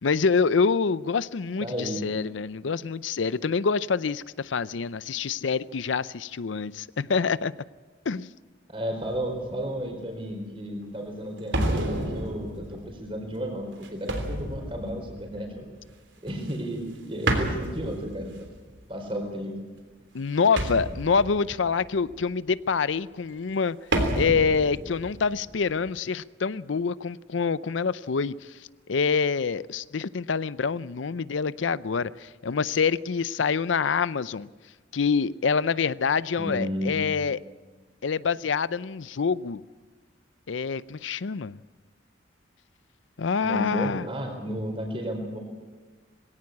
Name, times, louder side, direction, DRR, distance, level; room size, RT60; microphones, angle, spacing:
voice 1, 0.0-7.6 8.1-8.3 20.1-23.8 24.1-28.4 28.9-34.5 34.9-37.4 38.0-39.6 40.5-41.6 43.2-44.1, left 5 dB, 90° left, 0.6 m, -26 dB
voice 2, 1.6-2.0 8.7-15.6 16.2-18.3 18.9-19.5 36.4-37.1 43.4-45.4, equal, 30° right, 4.4 m, -33 dB
sound 1, 9.0-9.6 10.3-10.4 11.5-15.8 16.3-16.9 17.3-18.8 20.6-22.2 23.9-26.0, right 1 dB, 80° right, 3.4 m, -31 dB
20.5 x 17.5 x 8.5 m
head